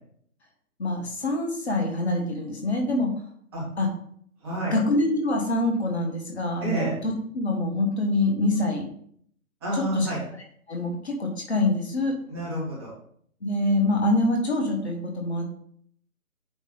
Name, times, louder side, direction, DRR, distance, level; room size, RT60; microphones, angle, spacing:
voice 1, 0.8-3.1 3.8-3.9 4.6-8.9 9.9-10.1 10.7-12.1 13.4-15.4, left 2 dB, 45° left, 1 dB, 1.3 m, -25 dB
voice 2, 4.4-4.8 6.6-6.9 9.6-10.2 12.3-12.9, right 1 dB, 15° right, -5 dB, 1.8 m, -29 dB
8.2 x 3.3 x 3.8 m, 0.65 s
figure-of-eight pair, 145°, 44 cm